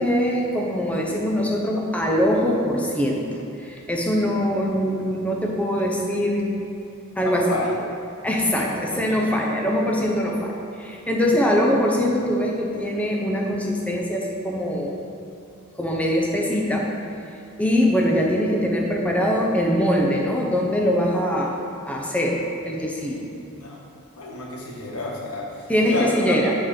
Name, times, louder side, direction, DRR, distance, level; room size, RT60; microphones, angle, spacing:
voice 1, 0.0-3.2 3.6-6.6 7.2-7.5 8.2-15.0 15.8-16.9 17.6-23.3 25.7-26.5, equal, 5° left, -1 dB, 0.7 m, -22 dB
voice 2, 7.2-7.8 8.6-9.2 23.4-23.9 24.2-26.4, left 2 dB, 85° left, -3 dB, 1.4 m, -31 dB
7.2 x 4.8 x 5.8 m, 2.7 s
head